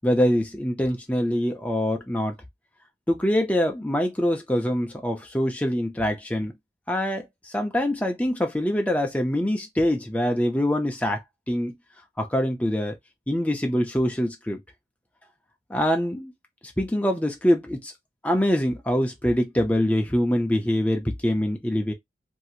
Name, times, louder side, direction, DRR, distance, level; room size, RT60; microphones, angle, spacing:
voice 1, 0.0-2.3 3.1-6.5 6.9-11.2 11.5-11.8 12.2-12.9 13.3-14.6 15.7-16.3 16.8-17.9 18.2-21.9, equal, 10° left, 0.5 m, -24 dB
3.0 x 2.7 x 2.4 m
head